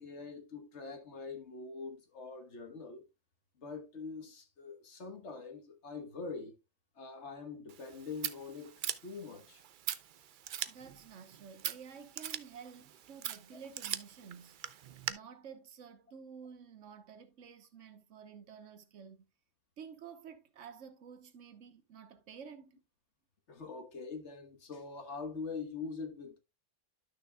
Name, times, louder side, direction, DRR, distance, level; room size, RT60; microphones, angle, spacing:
voice 1, 0.0-3.0 3.6-6.6 7.0-8.7 9.0-9.6 23.5-26.4, left 4 dB, 60° left, 1.5 m, -44 dB
Scissors, 7.7-15.1, right 10 dB, 60° right, 0.5 m, -42 dB
voice 2, 10.7-14.6 15.1-19.3 19.8-22.8, right 7 dB, 75° right, 1.3 m, -51 dB
11.5 x 6.4 x 2.2 m
omnidirectional pair, 1.3 m